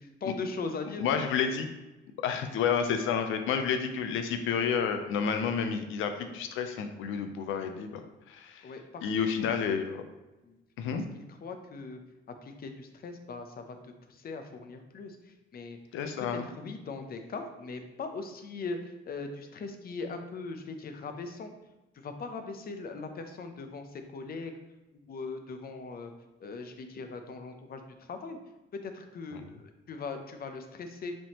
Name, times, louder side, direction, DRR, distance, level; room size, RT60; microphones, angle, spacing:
voice 1, 0.0-1.4 8.6-9.0 10.4-10.6 10.9-12.0 12.4-15.8 16.2-21.5 21.9-24.5 25.0-26.1 26.4-28.4 28.7-31.1, left 4 dB, 50° left, 7 dB, 0.6 m, -40 dB
voice 2, 1.0-1.7 2.2-8.0 8.3-8.7 9.0-10.0 10.8-11.0 15.9-16.5, left 6 dB, 85° left, 7 dB, 0.5 m, -30 dB
5.0 x 3.6 x 2.9 m, 1.0 s
cardioid pair, 90°, 20 cm